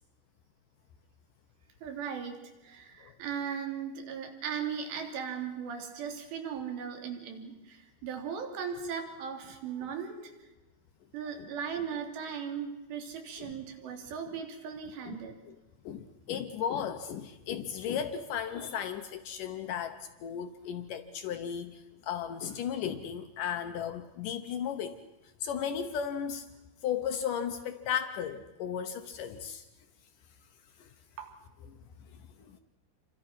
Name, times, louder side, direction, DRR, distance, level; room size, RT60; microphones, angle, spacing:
voice 1, 1.8-10.3 11.1-15.4 31.2-31.3, right 7 dB, 70° right, 3 dB, 4.7 m, -38 dB
voice 2, 15.9-25.0 25.4-26.5 26.8-29.7 30.8-30.9 32.4-32.6, left 8 dB, 85° left, 7 dB, 1.8 m, -35 dB
28.5 x 24.0 x 5.9 m, 1.0 s
omnidirectional pair, 5.2 m